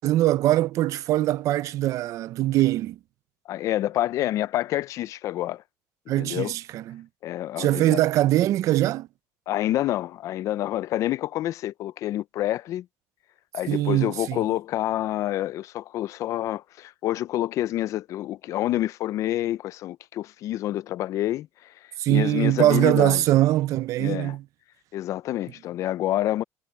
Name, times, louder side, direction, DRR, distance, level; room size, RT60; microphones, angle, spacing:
voice 1, 0.0-3.0 6.1-7.1 7.6-9.1 13.7-14.4 22.0-24.4, right 14 dB, 65° right, 0.8 m, -22 dB
voice 2, 3.5-5.6 6.2-6.5 7.2-8.0 9.5-12.9 13.5-21.7 22.1-23.2 24.0-24.4 24.9-26.4, left 14 dB, 60° left, 0.5 m, -28 dB
cardioid pair, 120°, 6 cm